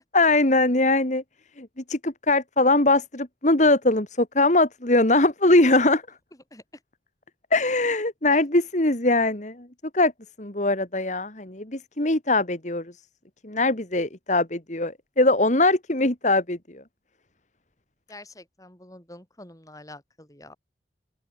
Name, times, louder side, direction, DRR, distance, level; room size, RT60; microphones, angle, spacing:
voice 1, 0.1-1.2 1.6-6.0 7.5-9.7 9.9-10.1 10.4-12.9 13.4-16.8, left 2 dB, 40° left, 2.4 m, -21 dB
voice 2, 18.1-20.6, left 1 dB, 20° left, 6.0 m, -46 dB
open air
head